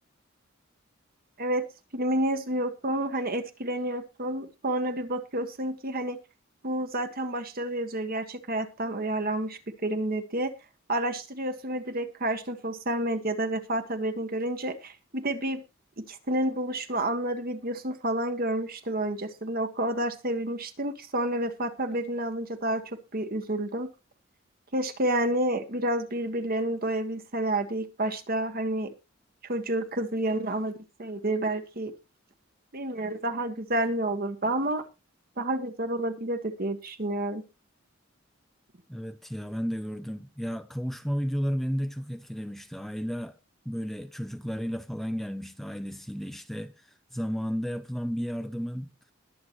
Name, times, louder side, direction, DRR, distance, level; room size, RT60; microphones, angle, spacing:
voice 1, 1.9-6.2 6.6-10.5 10.9-15.6 16.0-22.8 23.1-23.9 24.7-28.9 29.4-30.7 31.0-31.9 32.7-34.8 35.4-37.4, right 1 dB, 45° right, 1.5 m, -29 dB
voice 2, 38.9-43.4 43.7-48.9, equal, ahead, 0.5 m, -33 dB
21.0 x 7.9 x 3.0 m
head